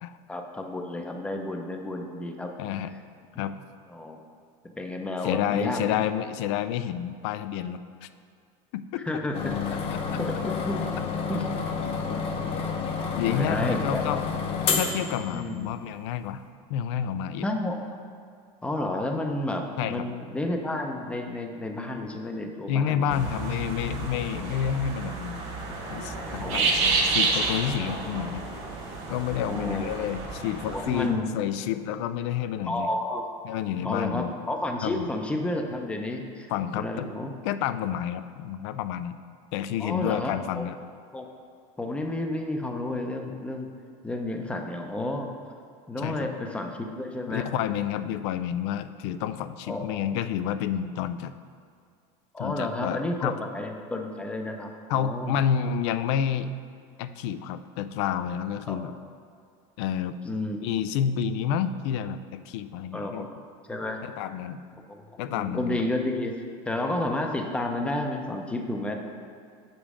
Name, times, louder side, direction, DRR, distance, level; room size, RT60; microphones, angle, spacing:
voice 1, 0.3-2.5 3.9-4.2 4.8-6.0 9.0-9.4 10.2-10.3 10.6-10.8 11.3-11.4 12.0-12.6 13.0-14.2 15.3-15.6 17.4-17.8 18.6-23.3 26.4-26.7 29.4-29.9 30.6-31.2 32.7-33.2 33.8-37.3 39.8-40.6 41.1-41.3 41.8-43.7 44.0-45.3 45.9-47.5 49.6-50.0 52.3-55.4 58.7-58.8 60.2-60.6 62.9-63.3 63.7-64.0 64.9-68.9, left 1 dB, 10° left, 3 dB, 0.6 m, -31 dB
voice 2, 2.6-2.9 3.4-3.6 5.2-8.1 8.7-9.0 9.7-10.0 13.1-14.2 14.7-16.4 16.7-17.5 19.8-20.1 22.7-25.4 25.9-28.4 29.1-32.9 33.4-34.3 34.8-35.1 36.5-37.1 37.4-39.2 39.5-40.8 46.0-46.3 47.3-51.3 52.4-53.4 54.9-56.5 57.0-58.9 59.8-60.2 60.6-63.3 64.0-64.6 65.2-65.8, left 9 dB, 75° left, 12 dB, 0.4 m, -29 dB
sound 1, 9.3-15.8, left 5 dB, 40° left, 0.8 m, -30 dB
sound 2, 23.1-31.1, right 3 dB, 45° right, 1.4 m, -30 dB
7.1 x 5.2 x 4.9 m, 2.2 s
cardioid pair, 145°, 14 cm